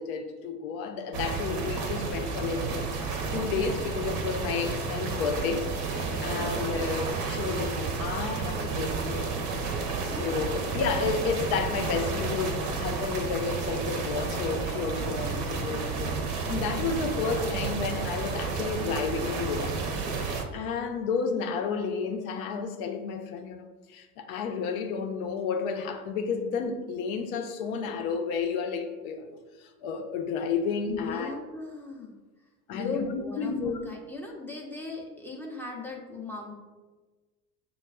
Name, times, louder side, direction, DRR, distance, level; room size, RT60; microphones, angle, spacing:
voice 1, 0.0-2.9 3.3-5.7 6.2-9.3 10.0-19.8 20.2-31.4 32.7-33.8, left 5 dB, 60° left, 5 dB, 0.7 m, -31 dB
sound 1, 1.1-20.4, right 4 dB, 45° right, 0.7 m, -31 dB
voice 2, 6.1-6.5 10.1-10.4 30.9-32.1 32.7-36.5, left 3 dB, 5° left, -2 dB, 0.6 m, -38 dB
6.8 x 2.3 x 2.3 m, 1.3 s
hypercardioid pair, 85°, 47 cm